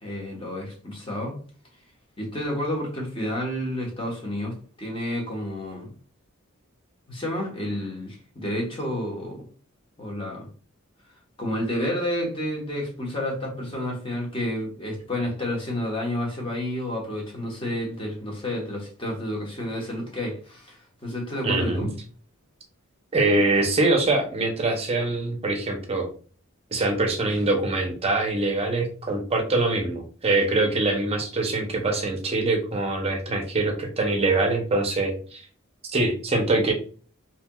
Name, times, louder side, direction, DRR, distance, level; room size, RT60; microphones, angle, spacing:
voice 1, 0.0-1.4 2.2-5.9 7.1-9.5 10.0-10.5 11.4-21.9, left 1 dB, 25° left, -1 dB, 1.1 m, -30 dB
voice 2, 21.4-21.9 23.1-26.1 26.7-35.4 35.9-36.7, right 2 dB, 30° right, 3 dB, 0.6 m, -24 dB
3.3 x 2.8 x 2.3 m, 0.41 s
head